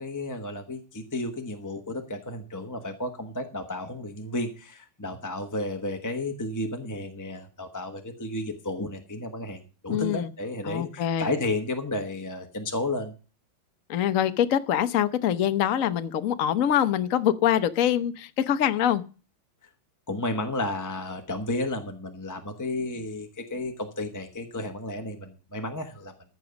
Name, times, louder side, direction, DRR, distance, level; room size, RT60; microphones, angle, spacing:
voice 1, 0.0-13.1 20.1-26.1, left 2 dB, 15° left, 5 dB, 0.7 m, -32 dB
voice 2, 9.9-10.3 10.6-11.3 13.9-19.0, left 10 dB, 55° left, 10 dB, 0.9 m, -24 dB
14.5 x 6.2 x 6.9 m, 0.35 s
omnidirectional pair, 2.2 m